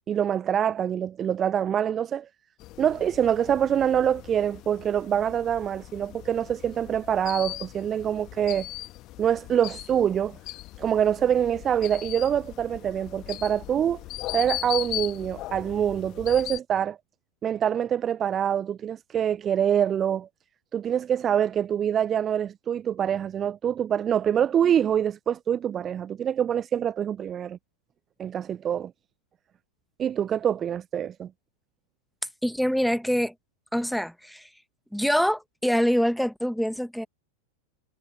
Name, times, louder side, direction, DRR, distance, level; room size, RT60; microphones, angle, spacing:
voice 1, 0.1-2.3 2.8-8.7 9.2-10.4 10.8-14.0 14.3-17.0 17.4-20.3 20.7-27.6 28.2-28.9 30.0-31.3, right 9 dB, 25° right, 0.7 m, -25 dB
sound 1, 2.6-16.6, left 17 dB, 35° left, 1.5 m, -39 dB
voice 2, 32.4-33.3 33.7-34.5 34.9-37.1, equal, ahead, 1.7 m, -25 dB
figure-of-eight pair, 90°, 0 cm